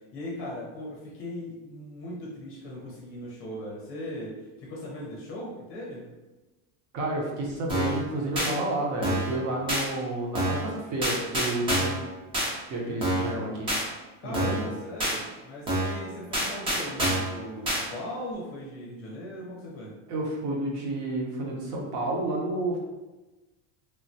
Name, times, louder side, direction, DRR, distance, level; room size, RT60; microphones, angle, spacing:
voice 1, 0.1-6.1 14.2-19.9, left 1 dB, 35° left, -4 dB, 0.6 m, -39 dB
voice 2, 6.9-11.9 12.7-13.7 14.2-14.6 20.1-22.8, right 1 dB, 55° right, -1 dB, 0.8 m, -30 dB
sound 1, 7.7-8.0 8.4-8.5 9.0-9.3 9.7-9.8 10.3-10.7 11.0-12.0 12.3-12.5 13.0-13.3 13.7-13.8 14.3-14.7 15.0-15.2 15.7-16.0 16.3-17.3 17.7-17.8, right 1 dB, 15° right, 0.5 m, -27 dB
3.3 x 2.1 x 2.6 m, 1.1 s
cardioid pair, 175°, 37 cm